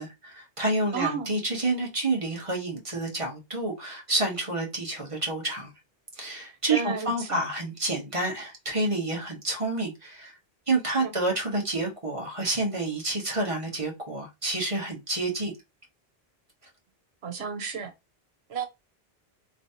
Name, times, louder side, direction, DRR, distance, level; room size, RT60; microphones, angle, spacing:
voice 1, 0.0-5.7 6.2-10.3 10.7-15.5, right 2 dB, 30° right, 1.2 m, -29 dB
voice 2, 0.9-1.4 6.4-7.4 11.0-11.1 17.2-17.9 18.5-18.7, right 6 dB, 90° right, 1.1 m, -32 dB
3.3 x 3.1 x 2.7 m
omnidirectional pair, 1.0 m